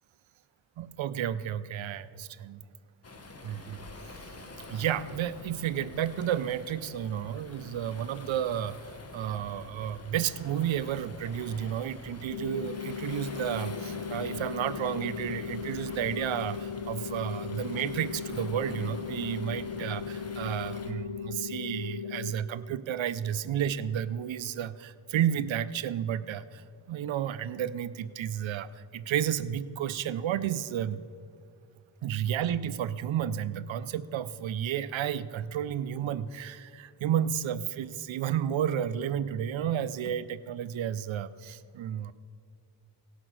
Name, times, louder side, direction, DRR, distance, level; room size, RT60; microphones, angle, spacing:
voice 1, 0.8-2.7 3.4-3.8 4.7-8.8 9.1-31.0 32.0-42.1, right 10 dB, 85° right, 15 dB, 0.5 m, -32 dB
Waves surf, 3.0-20.9, left 2 dB, 35° left, 1.0 m, -46 dB
sound 1, 12.3-22.3, left 7 dB, 60° left, 0.5 m, -37 dB
17.5 x 5.9 x 4.6 m, 2.2 s
wide cardioid pair, 85°, 45 cm